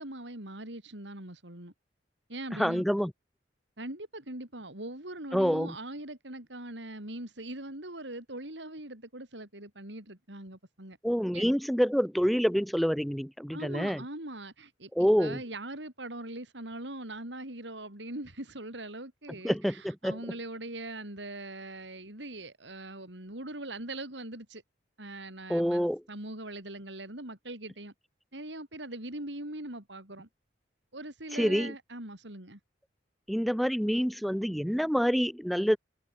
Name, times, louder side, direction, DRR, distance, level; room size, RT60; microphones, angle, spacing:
voice 1, 0.0-1.7 2.3-2.8 3.8-11.0 11.3-11.4 13.5-24.6 25.0-27.9 28.3-30.3 30.9-32.6, right 1 dB, 70° right, 5.6 m, -41 dB
voice 2, 2.5-3.1 5.3-5.7 11.0-14.0 14.9-15.4 19.4-20.2 25.5-26.0 31.3-31.7 33.3-35.8, equal, ahead, 0.4 m, -27 dB
head